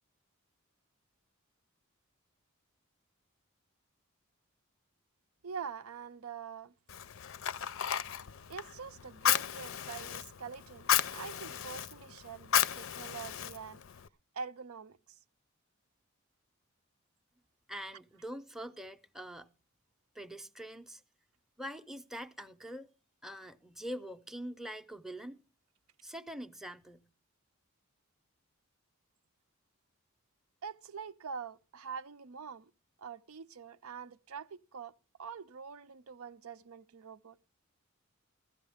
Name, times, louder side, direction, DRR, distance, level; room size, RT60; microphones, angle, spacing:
voice 1, 5.4-6.7 8.5-13.8 14.3-15.2 30.6-32.7 33.0-34.9 35.2-37.4, right 6 dB, 85° right, 0.6 m, -45 dB
Fire, 6.9-14.1, left 9 dB, 65° left, 0.5 m, -34 dB
voice 2, 17.7-19.5 20.1-21.0 21.6-22.9 23.2-25.4 26.0-27.1, equal, ahead, 0.6 m, -44 dB
15.5 x 13.5 x 3.5 m
head